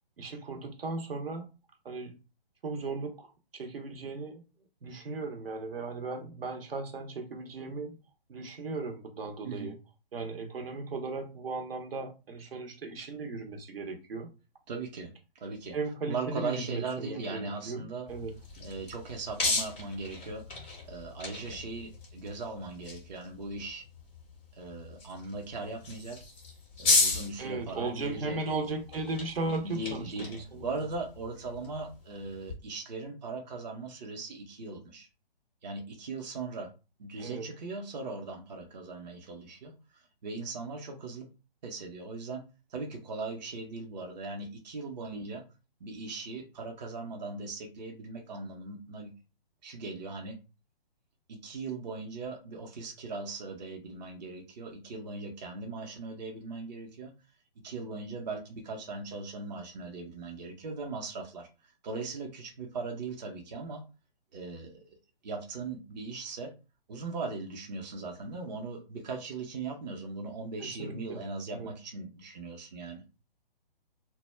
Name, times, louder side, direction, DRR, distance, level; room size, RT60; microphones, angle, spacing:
voice 1, 0.2-1.5 1.8-2.2 2.6-4.4 4.8-8.0 8.3-9.8 10.1-14.3 15.7-18.3 27.4-30.6 37.2-37.5 70.8-71.2 71.5-71.7, right 3 dB, 75° right, 4 dB, 0.8 m, -36 dB
voice 2, 9.4-9.7 14.7-15.7 16.1-18.1 18.6-23.8 24.5-26.2 26.8-28.4 29.5-30.3 30.6-35.1 35.6-36.7 37.0-41.3 41.6-42.4 42.7-45.4 45.8-49.1 49.6-50.4 51.3-57.1 57.6-63.8 64.3-65.0 65.2-66.5 66.9-73.0, right 3 dB, 45° right, 2 dB, 0.6 m, -39 dB
sound 1, 18.1-32.5, left 3 dB, 10° left, 0.4 m, -35 dB
2.2 x 2.0 x 3.2 m, 0.30 s
hypercardioid pair, 150°, 30 cm